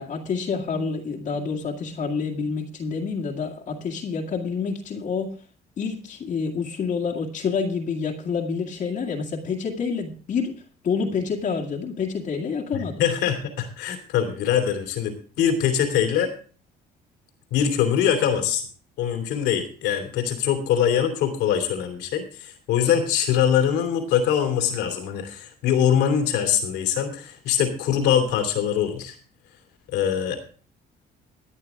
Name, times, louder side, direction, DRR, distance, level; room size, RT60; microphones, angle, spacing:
voice 1, 0.0-5.3 5.8-10.6 10.8-13.0, left 5 dB, 50° left, 0 dB, 2.0 m, -28 dB
voice 2, 12.7-16.3 17.5-18.6 19.0-29.2 29.9-30.5, left 9 dB, 90° left, 6 dB, 2.9 m, -23 dB
15.0 x 9.6 x 3.6 m, 0.39 s
cardioid pair, 110°, 17 cm